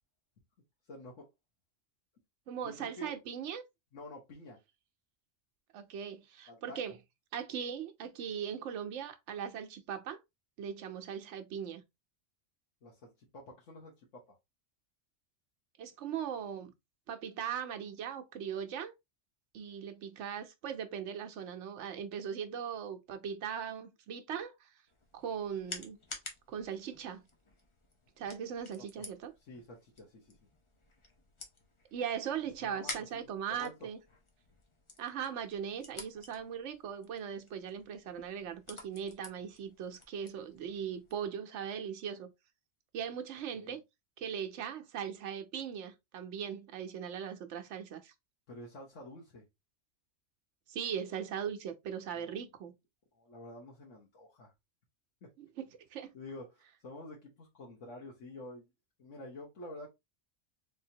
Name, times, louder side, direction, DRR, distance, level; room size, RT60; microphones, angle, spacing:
voice 1, 0.9-1.3 2.6-3.2 3.9-4.6 6.5-6.8 12.8-14.4 29.0-29.1 29.5-30.4 32.6-33.7 43.5-43.8 48.5-49.4 52.1-52.4 53.1-54.5 55.2-55.3 56.1-58.7 59.0-59.9, left 1 dB, 90° left, 1.4 m, -49 dB
voice 2, 2.5-3.6 5.7-7.0 7.3-10.2 10.6-11.8 15.8-16.7 17.1-18.9 19.5-24.7 25.1-26.0 26.5-27.2 28.2-29.3 31.9-34.0 35.0-42.3 42.9-43.8 44.2-48.1 50.7-52.7 55.4-56.1, right 8 dB, 75° right, 1.0 m, -39 dB
sound 1, 24.9-41.3, left 2 dB, 30° left, 0.7 m, -51 dB
3.5 x 3.4 x 2.7 m
omnidirectional pair, 1.2 m